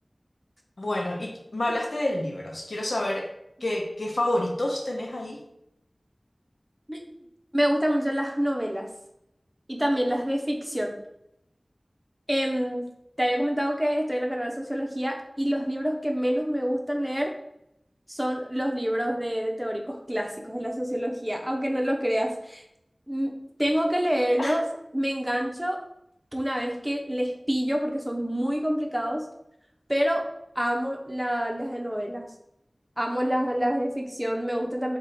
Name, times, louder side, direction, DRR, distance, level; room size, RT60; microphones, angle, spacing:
voice 1, 0.8-3.3 3.6-5.4 24.4-24.6, left 1 dB, 80° left, 1 dB, 0.8 m, -28 dB
voice 2, 7.5-8.9 9.7-10.9 12.3-12.9 13.2-17.3 18.1-22.6 23.1-23.3 23.6-24.7 24.9-25.8 26.3-29.3 29.9-30.3 30.5-32.3 33.0-35.0, equal, 10° right, 1 dB, 0.8 m, -27 dB
4.7 x 2.4 x 4.2 m, 0.80 s
wide cardioid pair, 45°, 0 cm